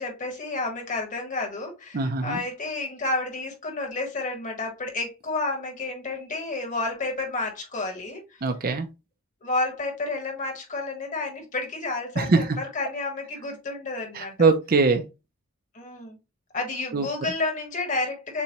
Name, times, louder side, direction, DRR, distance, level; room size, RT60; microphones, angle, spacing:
voice 1, 0.0-8.2 9.4-14.5 15.7-16.2 16.5-18.4, left 3 dB, 35° left, 1.4 m, -30 dB
voice 2, 1.9-2.4 8.4-8.9 12.2-12.5 14.1-15.0 16.9-17.1, right 4 dB, 40° right, 0.5 m, -22 dB
6.8 x 2.3 x 2.9 m
head